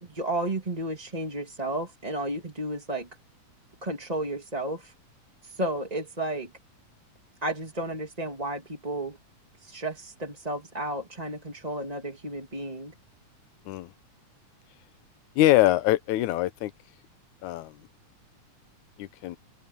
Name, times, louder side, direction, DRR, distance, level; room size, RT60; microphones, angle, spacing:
voice 1, 0.0-3.1 3.8-4.9 5.4-6.5 7.4-9.2 9.6-12.9, right 1 dB, 15° right, 2.2 m, -32 dB
voice 2, 15.4-16.7 17.4-17.8 19.0-19.4, left 16 dB, 80° left, 2.2 m, -23 dB
open air
omnidirectional pair, 3.5 m